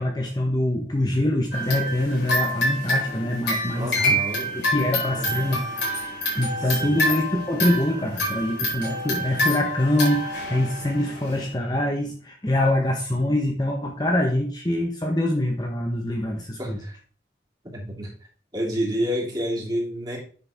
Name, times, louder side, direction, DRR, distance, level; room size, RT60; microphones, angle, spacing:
voice 1, 0.0-4.2 4.5-5.7 6.3-16.8, left 1 dB, 25° left, 1 dB, 1.0 m, -24 dB
sound 1, 1.5-11.5, left 1 dB, 80° left, 4.8 m, -27 dB
voice 2, 3.7-4.5 5.1-5.6 6.7-7.2 16.6-17.0 17.7-18.1 18.5-20.2, equal, 25° right, -4 dB, 3.1 m, -29 dB
9.4 x 6.7 x 3.6 m, 0.41 s
head